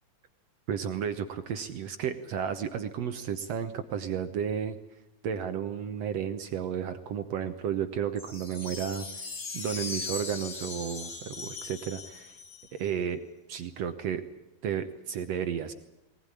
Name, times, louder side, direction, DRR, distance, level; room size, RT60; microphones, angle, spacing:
voice 1, 0.7-4.8 5.2-9.1 9.5-12.3 12.7-13.2 13.5-14.2 14.6-15.7, right 8 dB, 75° right, 9 dB, 1.4 m, -32 dB
sound 1, 8.2-12.9, left 4 dB, 40° left, 1.7 m, -39 dB
21.5 x 19.5 x 9.8 m, 0.97 s
omnidirectional pair, 4.4 m